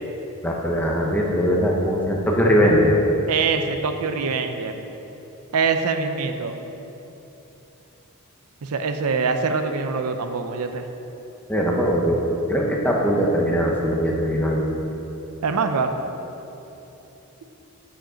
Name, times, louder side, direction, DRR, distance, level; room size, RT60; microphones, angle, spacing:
voice 1, 0.4-3.0 11.5-12.2 12.5-14.7, equal, 5° left, -2 dB, 0.8 m, -20 dB
voice 2, 3.3-4.7 5.5-6.6 8.6-10.9 15.4-15.9, right 5 dB, 80° right, 7 dB, 0.5 m, -24 dB
8.8 x 5.1 x 5.1 m, 3.0 s
head